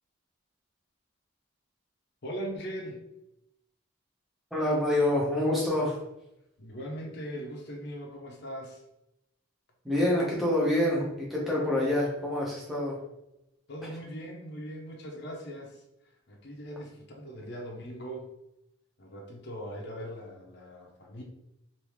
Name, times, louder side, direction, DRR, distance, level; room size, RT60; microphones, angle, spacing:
voice 1, 2.2-3.0 6.6-8.8 13.7-15.8 16.3-18.3 19.0-21.2, equal, 50° left, -1 dB, 0.6 m, -40 dB
voice 2, 4.5-6.0 9.8-13.0, left 1 dB, ahead, -5 dB, 0.8 m, -26 dB
3.4 x 2.6 x 3.0 m, 0.86 s
head